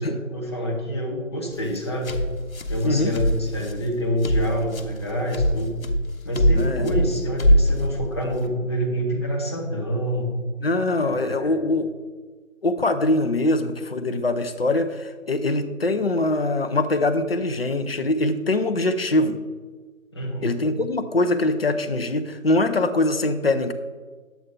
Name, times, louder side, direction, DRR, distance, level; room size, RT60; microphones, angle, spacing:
voice 1, 0.0-2.2 2.7-5.7 6.2-10.3 11.0-11.6 20.1-20.5, equal, 20° left, -3 dB, 1.0 m, -27 dB
sound 1, 1.5-8.5, equal, 75° left, 1.2 m, -24 dB
voice 2, 2.8-3.2 6.5-6.9 10.6-11.9 12.6-19.4 20.4-23.7, left 2 dB, 45° left, 8 dB, 0.7 m, -23 dB
10.0 x 8.1 x 3.8 m, 1.4 s
figure-of-eight pair, 165°, 41 cm